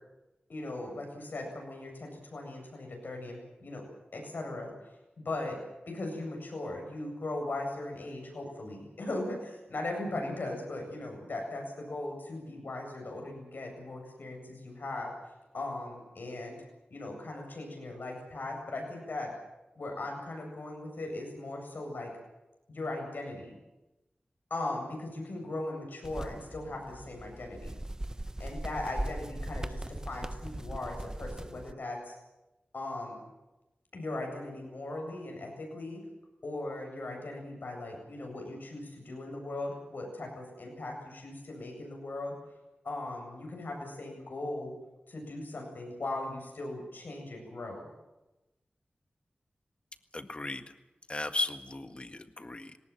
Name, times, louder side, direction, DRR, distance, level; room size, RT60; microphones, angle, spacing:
voice 1, 0.5-3.8 4.1-4.7 5.2-5.6 5.9-15.1 15.5-16.6 16.9-19.3 19.8-22.1 22.7-23.6 24.5-27.8 28.4-32.1 32.7-33.2 33.9-36.0 36.4-42.4 42.8-44.7 45.1-47.9, left 2 dB, 75° left, 1 dB, 8.0 m, -38 dB
sound 1, 26.0-31.7, right 1 dB, 20° right, 0.9 m, -39 dB
voice 2, 50.1-50.6 51.1-52.8, left 2 dB, 35° left, 9 dB, 1.8 m, -36 dB
19.5 x 18.5 x 9.2 m, 0.99 s
wide cardioid pair, 55°, 3 cm